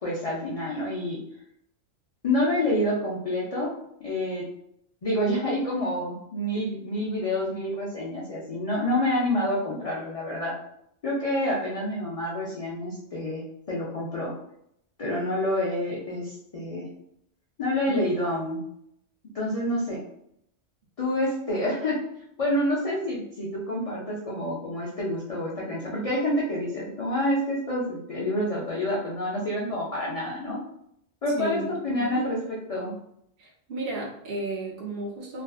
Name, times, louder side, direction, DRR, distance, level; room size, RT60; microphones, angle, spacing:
voice 1, 0.0-1.2 2.2-3.7 4.0-4.5 5.0-10.5 11.0-13.4 13.7-14.3 15.0-16.9 17.6-18.6 19.3-20.0 21.0-22.0 22.4-30.6 31.2-32.4 32.7-32.9, left 1 dB, 70° left, -4 dB, 0.3 m, -28 dB
voice 2, 31.4-31.7 32.0-32.3 33.4-35.4, right 2 dB, 55° right, -3 dB, 0.7 m, -33 dB
2.4 x 2.4 x 2.3 m, 0.73 s
omnidirectional pair, 1.3 m